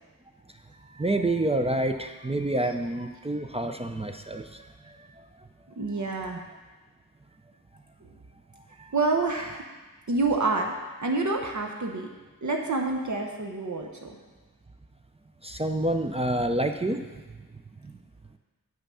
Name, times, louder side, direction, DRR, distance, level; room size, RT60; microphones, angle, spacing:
voice 1, 0.9-4.7 8.8-8.9 15.4-17.0, right 1 dB, 15° right, 6 dB, 0.4 m, -28 dB
voice 2, 5.8-6.4 8.0-8.1 8.9-9.6 10.1-12.1 12.4-14.2, right 3 dB, 55° right, 2 dB, 0.8 m, -28 dB
7.7 x 5.7 x 5.6 m, 1.3 s
wide cardioid pair, 70°, 36 cm